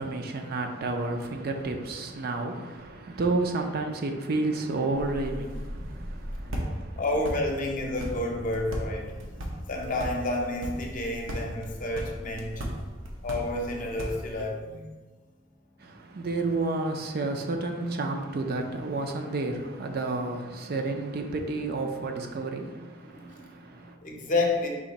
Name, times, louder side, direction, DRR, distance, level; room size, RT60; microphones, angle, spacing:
voice 1, 0.0-7.0 9.3-9.5 15.8-24.0, right 2 dB, 50° right, 0.4 m, -31 dB
sound 1, 4.9-14.5, equal, 85° right, 0.7 m, -37 dB
voice 2, 7.0-9.1 9.7-12.6 13.2-14.8 23.0-23.7 24.0-24.7, left 2 dB, 45° left, 0.7 m, -30 dB
4.8 x 2.5 x 4.0 m
head